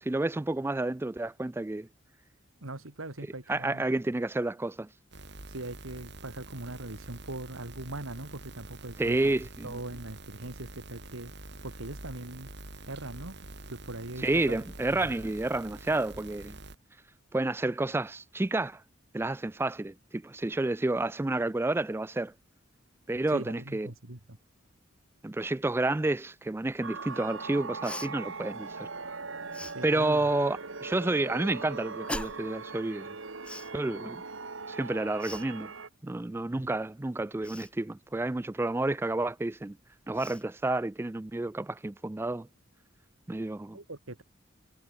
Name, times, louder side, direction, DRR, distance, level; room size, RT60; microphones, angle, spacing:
voice 1, 0.0-1.9 3.5-4.9 9.0-9.8 14.2-16.6 17.3-18.8 19.1-22.3 23.1-23.9 25.2-28.9 29.8-33.2 33.7-34.2 34.7-35.7 36.0-39.8 40.1-42.5 43.3-43.8, right 2 dB, 10° right, 0.3 m, -30 dB
voice 2, 2.6-3.9 5.5-9.2 9.6-11.3 11.6-12.5 12.9-13.4 13.7-15.1 23.3-24.4 29.7-30.2 36.5-36.7 43.7-44.2, right 2 dB, 90° right, 2.6 m, -41 dB
sound 1, 5.1-16.8, right 2 dB, 55° right, 6.3 m, -46 dB
sound 2, 26.8-35.9, right 4 dB, 70° right, 1.9 m, -40 dB
Cough, 27.8-28.1 29.5-29.8 32.1-32.5 33.4-33.7 35.2-35.5 37.4-37.7 39.6-39.7 40.1-40.4, left 1 dB, 5° left, 2.2 m, -39 dB
head